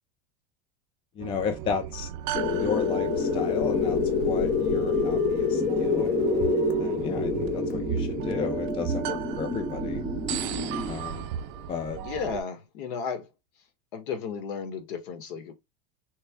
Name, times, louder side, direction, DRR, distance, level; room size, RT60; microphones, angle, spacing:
voice 1, 1.2-2.1 2.5-6.5 6.8-10.0 10.9-11.3 11.7-12.0, left 6 dB, 20° left, 0.3 m, -34 dB
sound 1, 1.2-12.4, right 10 dB, 55° right, 0.4 m, -34 dB
sound 2, 2.3-11.0, equal, 5° right, 0.7 m, -33 dB
sound 3, 2.4-10.7, left 7 dB, 35° left, 0.7 m, -28 dB
voice 2, 12.0-13.3 13.9-15.5, left 6 dB, 65° left, 1.1 m, -34 dB
3.2 x 2.1 x 3.4 m
supercardioid pair, 135°, 29 cm